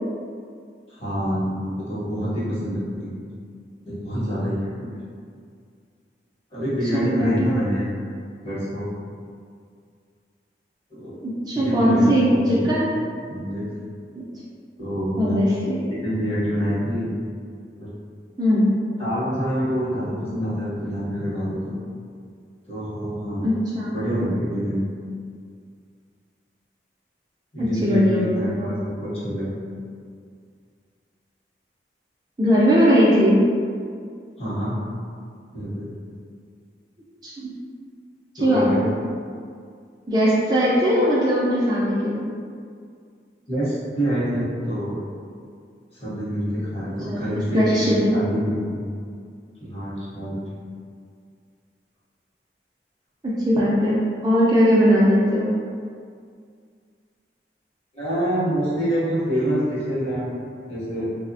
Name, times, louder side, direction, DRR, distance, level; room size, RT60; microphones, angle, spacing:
voice 1, 0.9-3.1 3.9-5.0 6.5-7.9 8.4-8.9 10.9-11.2 11.5-12.7 13.3-13.7 14.8-15.4 15.9-17.1 17.8-17.9 19.0-21.7 22.7-23.6 23.9-24.9 27.5-29.5 34.4-34.8 35.5-35.9 38.4-39.0 43.5-45.0 46.0-48.8 49.6-50.5 57.9-60.4 60.7-61.1, equal, 35° left, -9 dB, 0.8 m, -26 dB
voice 2, 6.9-7.6 11.2-12.9 15.2-15.8 18.4-18.7 23.4-24.0 27.6-28.7 32.4-33.4 37.2-37.5 38.3-38.9 40.1-42.3 47.1-47.2 47.5-48.1 53.2-54.0 54.2-55.5, equal, 25° right, -7 dB, 0.3 m, -19 dB
3.2 x 2.0 x 2.6 m, 2.2 s
head